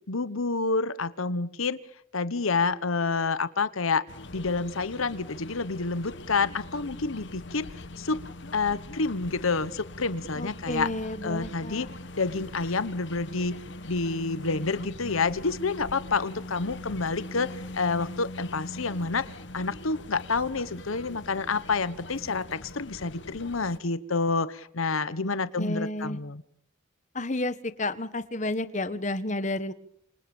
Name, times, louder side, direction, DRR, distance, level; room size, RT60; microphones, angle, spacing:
voice 1, 0.1-1.8 2.1-4.0 4.3-7.7 8.0-8.2 8.5-10.9 11.2-11.9 12.2-13.5 13.8-26.4, left 4 dB, 90° left, 16 dB, 1.2 m, -28 dB
sound 1, 4.1-23.8, left 2 dB, 60° left, 1.4 m, -42 dB
voice 2, 10.3-11.9 25.2-26.2 27.1-29.7, left 2 dB, 35° left, 13 dB, 1.4 m, -31 dB
27.5 x 26.5 x 7.2 m, 0.70 s
head